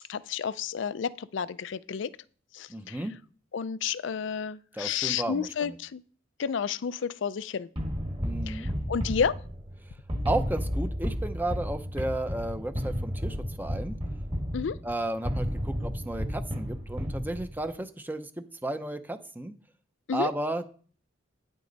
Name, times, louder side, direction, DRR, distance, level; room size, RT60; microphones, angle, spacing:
voice 1, 0.1-2.1 2.5-3.0 3.5-6.0 6.4-7.7 8.5-9.4 14.5-14.8 20.1-20.3, left 7 dB, 65° left, 0.4 m, -31 dB
voice 2, 2.7-3.1 4.7-5.8 8.2-8.7 10.3-14.0 14.8-19.5 20.1-20.7, right 1 dB, 10° right, 0.6 m, -33 dB
sound 1, 7.8-17.7, equal, 30° right, 1.6 m, -33 dB
9.7 x 8.2 x 4.0 m
head